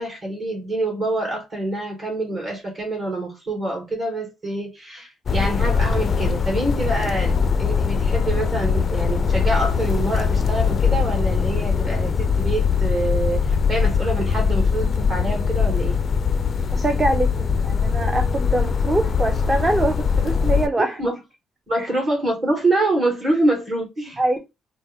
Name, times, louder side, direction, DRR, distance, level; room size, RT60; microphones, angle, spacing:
voice 1, 0.0-7.3 7.6-16.0 20.8-21.2 21.7-24.4, right 2 dB, 45° right, 2.2 m, -26 dB
sound 1, 5.3-20.7, left 6 dB, 45° left, 0.3 m, -21 dB
voice 2, 16.7-21.0 21.8-21.9 24.2-24.4, right 2 dB, 25° right, 0.7 m, -23 dB
4.3 x 2.1 x 3.4 m
cardioid pair, 90°, 0 cm